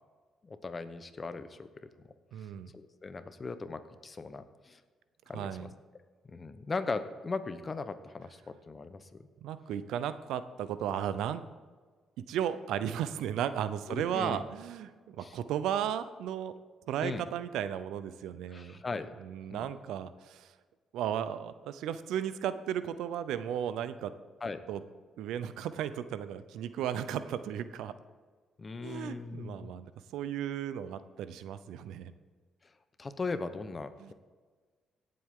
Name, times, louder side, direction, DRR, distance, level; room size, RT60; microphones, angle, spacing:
voice 1, 0.4-1.7 2.7-4.8 5.3-5.7 6.2-9.1 13.9-14.5 15.2-15.4 17.0-17.2 18.5-19.1 19.5-19.7 24.4-24.6 28.6-29.7 33.0-34.1, left 3 dB, 30° left, 11 dB, 0.9 m, -38 dB
voice 2, 2.3-2.7 5.3-5.7 9.4-11.4 12.3-16.5 16.9-18.8 19.2-20.5 20.9-24.1 24.7-24.8 25.2-27.9 28.8-32.1 34.0-34.1, right 9 dB, 85° right, 13 dB, 0.6 m, -35 dB
17.0 x 7.7 x 3.7 m, 1.5 s
cardioid pair, 90°, 0 cm